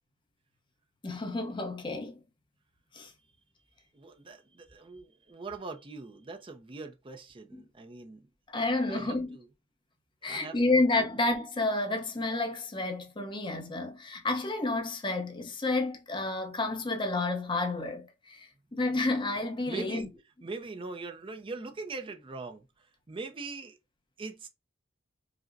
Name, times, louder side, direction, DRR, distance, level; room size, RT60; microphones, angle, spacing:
voice 1, 1.0-2.2 2.9-3.1 8.5-9.4 10.2-20.1, left 2 dB, 25° left, 0.7 m, -30 dB
voice 2, 3.9-8.3 8.8-9.5 10.2-11.2 19.7-20.1 20.4-23.8 24.2-24.5, right 3 dB, 25° right, 0.5 m, -42 dB
4.9 x 2.1 x 2.5 m
head